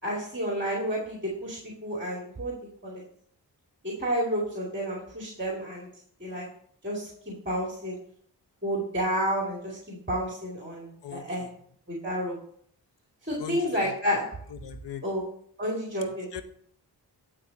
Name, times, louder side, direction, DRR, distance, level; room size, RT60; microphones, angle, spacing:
voice 1, 0.0-2.6 2.8-3.0 3.8-5.9 6.2-6.5 6.8-8.0 8.6-11.5 11.9-12.3 13.3-14.2 15.0-15.2 15.6-16.3, equal, 25° right, -3 dB, 2.5 m, -30 dB
voice 2, 11.0-11.5 13.4-13.9 14.5-15.0 16.3-16.4, left 9 dB, 85° left, 9 dB, 0.9 m, -40 dB
9.9 x 3.8 x 6.4 m, 0.63 s
cardioid pair, 50°, 42 cm